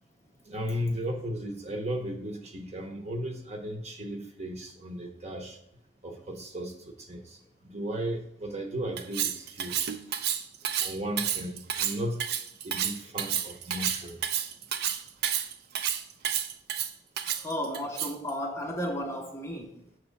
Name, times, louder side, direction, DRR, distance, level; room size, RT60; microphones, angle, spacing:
voice 1, 0.5-5.6 6.0-7.4 7.6-9.8 10.8-12.2 12.6-14.2, equal, 35° right, 4 dB, 0.8 m, -35 dB
Cutlery silverware, 9.0-18.3, right 9 dB, 55° right, 0.4 m, -30 dB
voice 2, 17.4-19.7, equal, 15° left, 1 dB, 0.6 m, -33 dB
6.2 x 3.0 x 5.2 m, 0.74 s
head